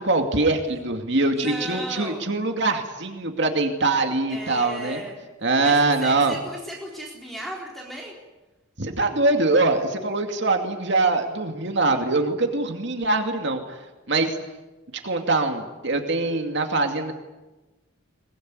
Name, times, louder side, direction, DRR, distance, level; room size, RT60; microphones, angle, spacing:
voice 1, 0.0-5.0 5.4-6.4 8.8-13.8 14.1-14.4 15.0-17.1, right 3 dB, 60° right, 4 dB, 2.5 m, -23 dB
voice 2, 1.3-2.3 4.3-5.3 5.6-8.1, equal, ahead, -2 dB, 3.9 m, -36 dB
22.5 x 21.5 x 9.6 m, 1.1 s
head